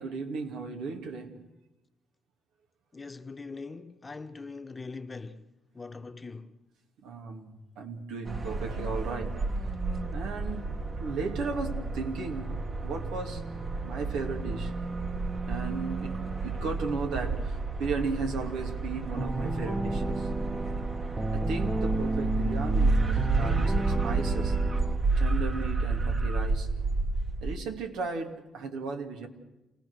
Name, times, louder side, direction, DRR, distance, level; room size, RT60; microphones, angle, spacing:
voice 1, 0.0-1.3 7.0-9.4 10.1-10.6 11.0-13.4 13.8-14.7 15.5-20.3 21.3-24.6 25.2-26.7 27.4-29.3, right 4 dB, 85° right, 2.7 m, -35 dB
voice 2, 2.9-5.4 5.7-6.5, left 4 dB, 30° left, 1.4 m, -41 dB
sound 1, 8.3-27.6, right 3 dB, 40° right, 1.9 m, -30 dB
sound 2, 19.1-25.0, right 2 dB, 20° right, 0.9 m, -33 dB
29.0 x 18.0 x 6.6 m
supercardioid pair, 60°, 0 cm